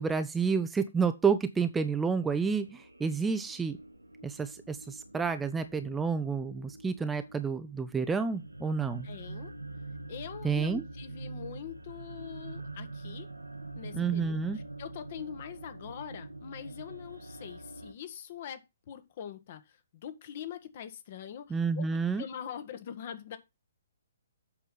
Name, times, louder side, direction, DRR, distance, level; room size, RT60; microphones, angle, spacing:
voice 1, 0.0-3.8 4.2-9.1 10.4-10.8 13.9-14.6 21.5-22.2, right 5 dB, 10° right, 0.6 m, -30 dB
sound 1, 1.7-17.9, right 2 dB, 80° right, 1.3 m, -45 dB
voice 2, 9.0-9.5 10.1-13.3 13.7-18.6 18.9-23.4, left 9 dB, 40° left, 1.4 m, -43 dB
8.3 x 6.0 x 5.6 m
figure-of-eight pair, 125°, 0 cm